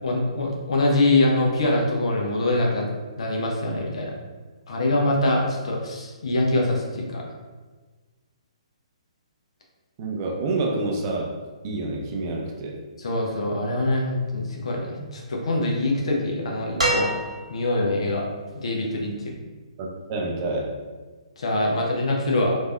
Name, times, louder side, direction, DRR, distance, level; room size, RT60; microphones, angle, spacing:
voice 1, 0.0-2.9 3.2-4.1 4.7-7.2 13.0-17.1 17.5-18.3 18.6-19.3 21.4-22.6, left 2 dB, 60° left, -1 dB, 0.7 m, -24 dB
voice 2, 10.0-11.3 11.6-12.8 19.8-20.7, right 2 dB, 35° right, -1 dB, 0.5 m, -28 dB
sound 1, 16.8-17.8 19.3-19.4, right 1 dB, 75° right, 1.0 m, -26 dB
3.1 x 2.6 x 2.3 m, 1.3 s
figure-of-eight pair, 130°, 4 cm